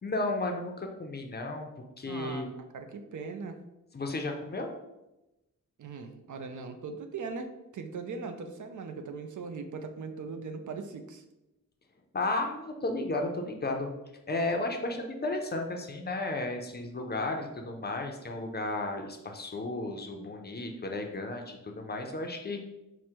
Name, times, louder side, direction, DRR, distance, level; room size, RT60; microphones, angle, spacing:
voice 1, 0.0-1.7 2.0-2.5 3.9-4.7 12.1-13.9 14.3-22.6, left 2 dB, 30° left, 3 dB, 0.5 m, -33 dB
voice 2, 2.1-3.6 5.8-7.5 7.7-11.2, right 4 dB, 70° right, 6 dB, 0.5 m, -39 dB
4.8 x 2.1 x 4.4 m, 0.96 s
wide cardioid pair, 165°, 31 cm